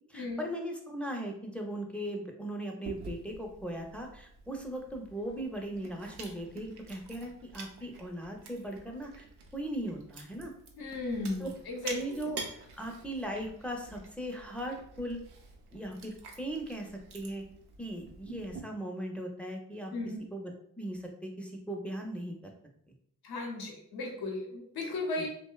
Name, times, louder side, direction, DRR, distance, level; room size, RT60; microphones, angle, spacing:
voice 1, 0.1-9.3 9.5-10.5 11.4-11.5 11.9-12.4 12.8-15.2 15.7-17.4 17.8-19.9 20.3-22.3 25.2-25.3, right 1 dB, 5° left, 1 dB, 0.5 m, -38 dB
Chewing mastication, 2.8-18.6, right 4 dB, 85° right, 0.6 m, -48 dB
voice 2, 10.8-12.2 19.9-20.2 23.2-25.3, left 2 dB, 70° left, 1 dB, 0.7 m, -35 dB
2.7 x 2.1 x 2.2 m, 0.68 s
cardioid pair, 45°, 39 cm